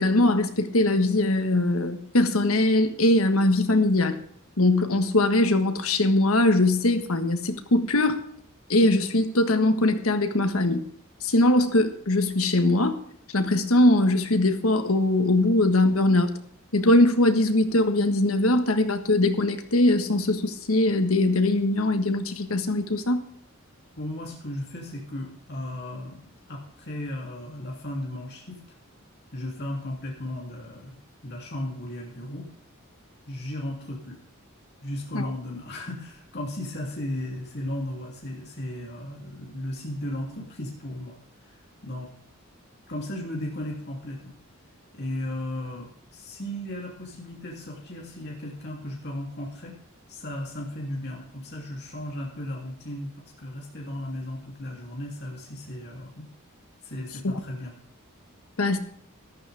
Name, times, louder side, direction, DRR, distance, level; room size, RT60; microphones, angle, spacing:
voice 1, 0.0-4.2 4.6-8.2 8.7-10.8 11.2-13.0 13.3-16.4 16.7-23.2 35.1-35.2 57.2-57.3 58.6-58.8, left 2 dB, 85° left, 8 dB, 1.6 m, -21 dB
voice 2, 24.0-26.2 26.5-28.6 29.3-31.0 31.2-32.5 33.3-34.2 34.8-41.1 41.4-42.1 42.9-44.3 44.9-49.8 50.1-56.3 56.8-57.7, left 1 dB, 50° left, -2 dB, 3.1 m, -35 dB
14.0 x 12.5 x 3.6 m, 0.66 s
head